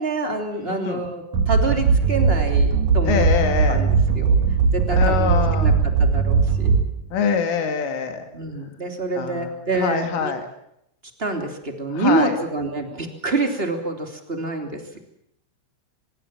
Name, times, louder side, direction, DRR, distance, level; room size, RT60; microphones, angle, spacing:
voice 1, 0.0-3.3 3.7-4.4 4.7-6.8 8.3-10.3 11.2-15.0, right 3 dB, 15° right, 4 dB, 2.0 m, -27 dB
voice 2, 0.7-1.0 3.1-3.8 5.0-5.8 7.1-8.2 9.2-9.5 9.8-10.4 12.0-12.3, left 6 dB, 75° left, 6 dB, 4.9 m, -24 dB
sound 1, 1.3-7.2, right 5 dB, 65° right, 1.9 m, -19 dB
25.0 x 22.0 x 7.4 m, 0.78 s
omnidirectional pair, 5.7 m